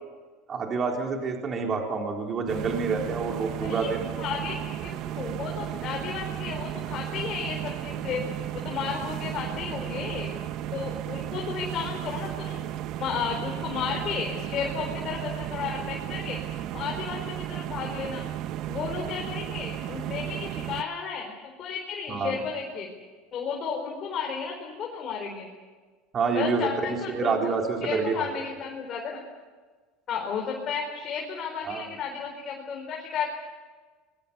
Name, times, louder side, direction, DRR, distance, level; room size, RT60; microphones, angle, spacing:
voice 1, 0.5-4.1 22.1-22.4 26.1-28.2 31.6-31.9, right 4 dB, 25° right, 1 dB, 3.9 m, -28 dB
sound 1, 2.5-20.8, right 12 dB, 50° right, 1.1 m, -34 dB
voice 2, 4.2-8.2 8.5-10.3 10.7-12.6 13.0-16.4 16.7-18.3 18.7-21.3 21.6-22.9 23.3-25.5 26.3-27.3 27.8-29.2 30.1-33.3, left 6 dB, 35° left, 0 dB, 4.5 m, -33 dB
26.5 x 22.5 x 6.9 m, 1.4 s
cardioid pair, 150°, 0 cm